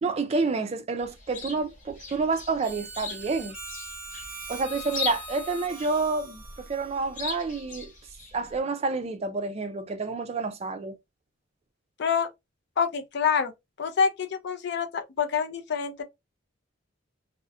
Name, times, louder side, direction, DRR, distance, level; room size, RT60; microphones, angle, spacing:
voice 1, 0.0-3.6 4.5-7.9 8.3-11.0, right 4 dB, 30° right, 0.3 m, -29 dB
Chirp tweet, 1.0-8.6, left 4 dB, 45° left, 1.0 m, -39 dB
Harmonica, 2.6-7.8, right 2 dB, 5° right, 0.8 m, -42 dB
voice 2, 12.8-13.5 13.8-16.0, left 6 dB, 60° left, 0.4 m, -26 dB
2.4 x 2.0 x 2.5 m
head